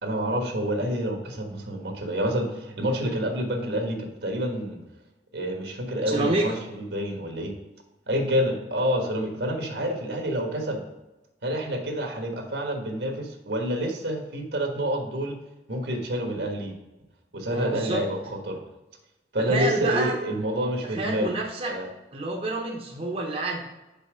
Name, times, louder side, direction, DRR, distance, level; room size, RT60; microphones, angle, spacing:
voice 1, 0.0-4.8 5.3-7.5 8.1-10.8 11.4-15.4 15.7-16.8 17.3-18.2 18.5-18.6 19.3-21.3 21.6-21.9, equal, 75° right, 3 dB, 1.4 m, -28 dB
voice 2, 6.1-6.6 17.5-18.0 19.5-20.2 20.9-21.7 22.1-23.6, right 2 dB, 35° right, -1 dB, 0.8 m, -28 dB
5.5 x 5.4 x 5.0 m, 1.0 s
head